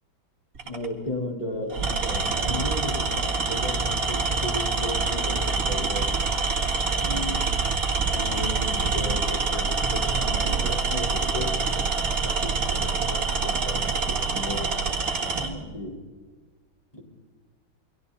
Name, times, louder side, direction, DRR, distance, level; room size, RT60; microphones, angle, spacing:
voice 1, 0.6-6.1 7.0-7.4 8.1-11.9 12.2-14.7 15.3-16.1 16.9-17.0, left 1 dB, 20° left, -1 dB, 4.5 m, -35 dB
Tools, 0.6-0.9 1.7-15.5, right 4 dB, 45° right, 2.3 m, -26 dB
29.5 x 23.5 x 4.2 m, 1.4 s
omnidirectional pair, 2.1 m